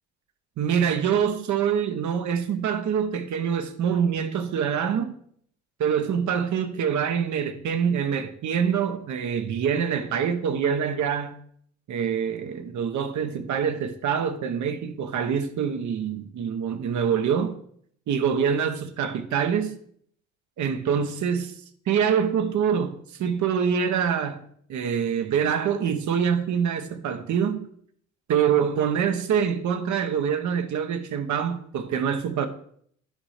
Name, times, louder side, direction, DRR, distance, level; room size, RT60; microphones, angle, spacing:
voice 1, 0.6-5.2 5.8-11.4 11.9-17.6 18.1-19.7 20.6-21.5 21.9-22.9 23.2-27.7 28.3-32.5, right 7 dB, 70° right, 1.1 m, -25 dB
9.7 x 4.1 x 6.6 m
cardioid pair, 90°, 30 cm